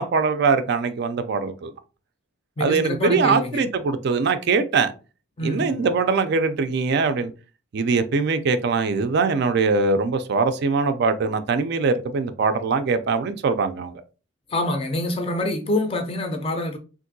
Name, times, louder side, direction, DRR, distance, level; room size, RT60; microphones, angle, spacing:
voice 1, 0.0-1.7 2.6-4.9 5.4-7.3 7.7-14.0, right 4 dB, 50° right, 0.3 m, -22 dB
voice 2, 2.6-3.6 5.4-5.9 14.5-16.8, left 1 dB, 25° left, 0.4 m, -26 dB
3.6 x 2.5 x 2.6 m
head